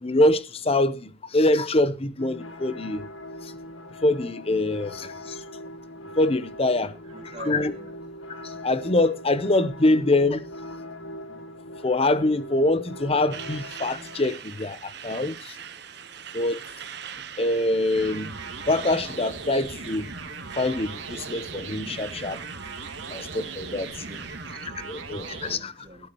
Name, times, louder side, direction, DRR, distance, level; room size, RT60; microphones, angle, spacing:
voice 1, 0.0-3.0 4.0-5.4 6.2-6.9 7.5-7.7 8.6-10.4 11.8-15.6 16.3-16.6 17.4-18.3 18.7-20.0 20.6-22.4 23.1-23.9 24.8-25.7, left 2 dB, 30° left, 0.8 m, -24 dB
sound 1, 2.2-14.2, left 1 dB, 90° left, 1.5 m, -41 dB
voice 2, 6.9-8.0 24.0-26.1, right 2 dB, 30° right, 2.3 m, -45 dB
Truck, 13.3-24.5, right 8 dB, 60° right, 1.1 m, -43 dB
sound 2, 17.9-25.6, right 4 dB, 90° right, 2.4 m, -38 dB
13.0 x 11.5 x 3.1 m
head